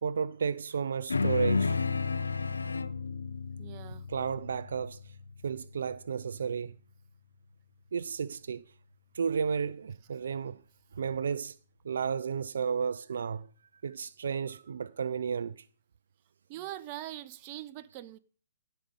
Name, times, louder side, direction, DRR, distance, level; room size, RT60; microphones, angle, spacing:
voice 1, 0.0-1.8 4.1-5.1 5.4-6.7 7.9-8.7 9.1-10.6 10.9-11.6 11.8-13.5 13.8-15.7, right 6 dB, 70° right, 0.4 m, -32 dB
sound 1, 1.1-5.8, left 4 dB, 90° left, 0.6 m, -32 dB
voice 2, 3.6-4.0 16.5-18.2, right 14 dB, 35° right, 0.7 m, -42 dB
16.5 x 5.5 x 5.2 m
hypercardioid pair, 135°, 0 cm